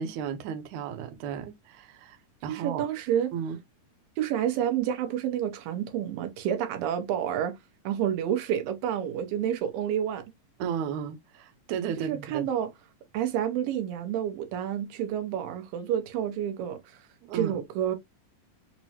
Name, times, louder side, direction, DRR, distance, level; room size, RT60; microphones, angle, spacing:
voice 1, 0.0-2.2 2.4-2.8 3.3-3.6 10.6-12.5 17.2-17.6, right 7 dB, 75° right, 1.9 m, -34 dB
voice 2, 2.5-3.3 4.2-7.6 7.9-10.2 12.0-12.7 13.1-16.8 17.3-18.0, right 10 dB, 90° right, 2.6 m, -29 dB
5.9 x 2.0 x 2.8 m
omnidirectional pair, 3.9 m